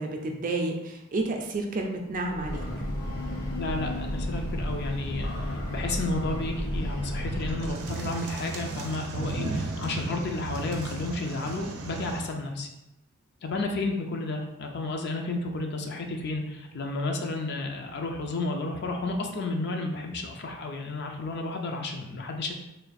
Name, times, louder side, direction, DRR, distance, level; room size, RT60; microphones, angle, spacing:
voice 1, 0.0-2.6, right 2 dB, 35° right, 2 dB, 0.4 m, -30 dB
Breathing / Train, 2.1-7.9, left 1 dB, 80° left, 0.9 m, -32 dB
voice 2, 3.6-12.7 13.4-22.5, left 2 dB, 50° left, 3 dB, 0.4 m, -32 dB
sound 1, 7.0-12.3, right 2 dB, 90° right, 0.5 m, -35 dB
3.3 x 2.4 x 4.0 m, 0.90 s
head